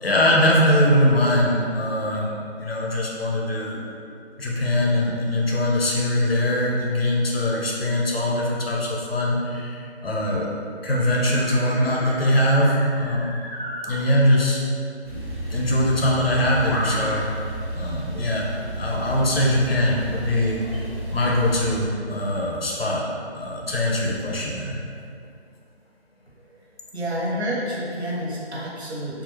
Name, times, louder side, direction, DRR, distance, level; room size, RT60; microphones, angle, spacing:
voice 1, 0.0-3.8 4.4-10.5 10.8-13.4 13.9-14.6 15.5-17.3 17.7-18.5 18.8-23.0 23.3-24.8, left 1 dB, 60° left, -3 dB, 0.8 m, -22 dB
sound 1, 10.9-13.9 15.3-15.4 16.6-17.2, equal, 35° left, 0.9 m, -34 dB
Male speech man speaking / Car / Idling, 15.0-21.8, right 1 dB, 25° right, 1.0 m, -32 dB
voice 2, 26.6-29.2, equal, 75° right, -5 dB, 1.1 m, -29 dB
3.5 x 2.5 x 3.0 m, 2.4 s
figure-of-eight pair, 165°, 33 cm